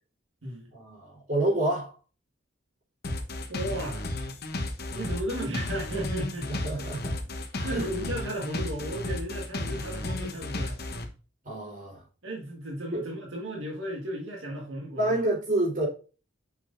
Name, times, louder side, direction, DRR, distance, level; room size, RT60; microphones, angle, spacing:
voice 1, 0.7-1.9 6.5-7.2 7.5-7.9 11.4-12.0 12.9-13.1 15.0-15.9, right 1 dB, 45° right, 3.9 m, -28 dB
sound 1, 3.0-11.1, left 2 dB, 55° left, 1.1 m, -33 dB
voice 2, 3.5-4.0 4.9-6.5 7.6-10.8 12.2-15.2, right 1 dB, 85° right, 1.7 m, -34 dB
7.3 x 6.0 x 2.6 m
head